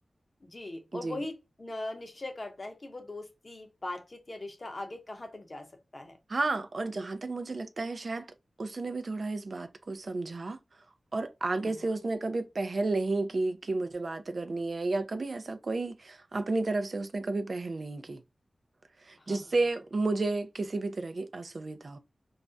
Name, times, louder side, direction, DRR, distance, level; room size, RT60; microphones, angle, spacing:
voice 1, 0.4-5.7 5.9-6.2 11.6-11.7 19.2-19.4, left 2 dB, 40° left, 0.7 m, -40 dB
voice 2, 6.3-8.3 8.6-10.6 11.1-18.2 19.1-22.0, right 3 dB, 55° right, 0.3 m, -32 dB
2.3 x 2.1 x 2.5 m
wide cardioid pair, 95°, 0 cm